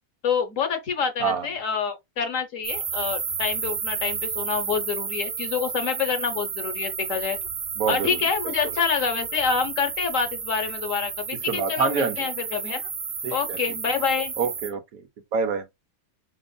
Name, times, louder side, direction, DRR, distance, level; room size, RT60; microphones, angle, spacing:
voice 1, 0.2-7.4 7.9-12.8 13.3-14.3, left 6 dB, 65° left, 1.3 m, -27 dB
sound 1, 2.6-14.7, right 6 dB, 65° right, 1.4 m, -32 dB
voice 2, 7.8-8.5 11.5-12.3 13.2-13.6 14.4-15.0 15.3-15.7, right 6 dB, 80° right, 1.3 m, -26 dB
5.3 x 4.3 x 2.2 m
omnidirectional pair, 1.5 m